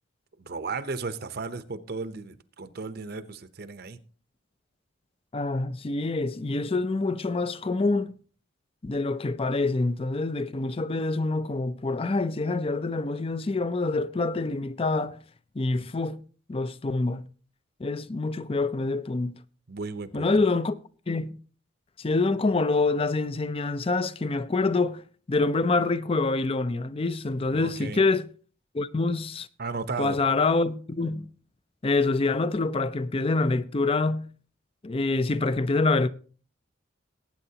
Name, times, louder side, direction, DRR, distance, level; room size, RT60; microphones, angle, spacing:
voice 1, 0.4-4.0 19.7-20.3 27.5-28.0 29.6-30.2, right 4 dB, 55° right, 0.7 m, -35 dB
voice 2, 5.3-8.1 8.8-15.2 15.6-16.2 16.5-17.2 17.8-19.3 20.1-20.7 21.1-21.4 22.0-25.0 25.3-28.3 28.7-29.5 30.0-31.3 31.8-34.3 34.8-36.1, left 3 dB, 30° left, 0.5 m, -26 dB
19.0 x 8.8 x 2.8 m
head